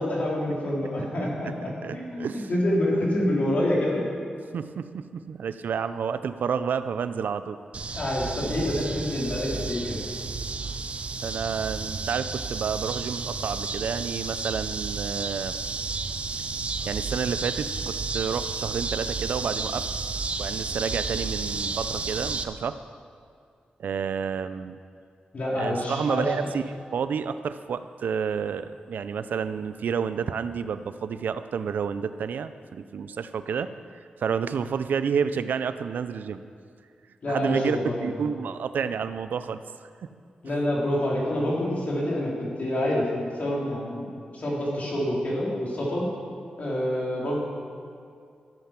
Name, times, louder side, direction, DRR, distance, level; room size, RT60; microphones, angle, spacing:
voice 1, 0.0-4.0 7.9-10.0 25.3-26.3 37.2-38.1 40.4-46.1 46.6-47.4, left 1 dB, 55° left, -5 dB, 3.4 m, -27 dB
voice 2, 1.8-2.5 4.5-7.6 11.2-15.5 16.8-19.9 20.4-22.7 23.8-24.8 25.5-36.4 37.3-37.8 38.0-39.6 40.0-40.1, right 6 dB, 85° right, 12 dB, 0.4 m, -30 dB
sound 1, 7.7-22.4, right 4 dB, 45° right, 0.6 m, -32 dB
14.0 x 7.7 x 5.8 m, 2.3 s
wide cardioid pair, 100°, 3 cm